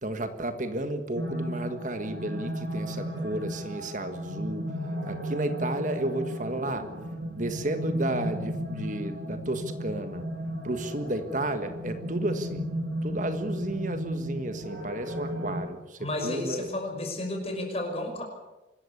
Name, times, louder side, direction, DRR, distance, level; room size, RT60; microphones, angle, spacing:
voice 1, 0.0-4.6 5.1-6.9 7.4-10.2 10.6-12.6 13.0-16.7, right 1 dB, 40° right, 8 dB, 1.6 m, -32 dB
sound 1, 1.2-15.6, equal, 70° right, 7.8 m, -34 dB
voice 2, 16.0-18.2, left 1 dB, 30° left, 3 dB, 5.8 m, -32 dB
25.0 x 14.0 x 9.9 m, 1.1 s
head